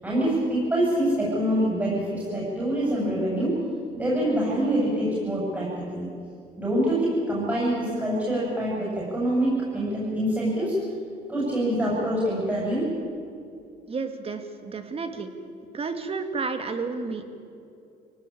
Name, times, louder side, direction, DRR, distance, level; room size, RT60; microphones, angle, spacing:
voice 1, 0.0-3.6 3.9-6.1 6.6-10.8 11.3-12.9, right 1 dB, 10° right, -5 dB, 7.8 m, -25 dB
voice 2, 13.9-15.3 15.7-17.2, right 4 dB, 35° right, 7 dB, 2.4 m, -31 dB
24.0 x 18.0 x 8.8 m, 2.5 s
cardioid pair, 110°, 17 cm